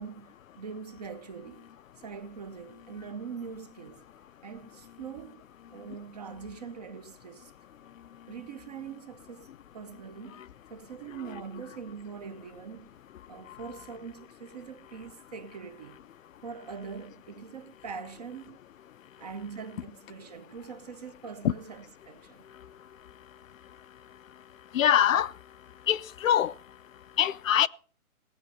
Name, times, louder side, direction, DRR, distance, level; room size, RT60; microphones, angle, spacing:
voice 1, 0.0-1.6 2.0-4.0 4.4-5.4 5.7-7.5 8.3-10.4 10.7-12.9 13.3-16.0 16.4-18.6 19.2-22.4, right 6 dB, 30° right, 0.6 m, -42 dB
voice 2, 24.7-25.3 25.9-26.5 27.2-27.7, left 10 dB, 65° left, 0.5 m, -23 dB
17.5 x 8.4 x 5.3 m
hypercardioid pair, 155°, 44 cm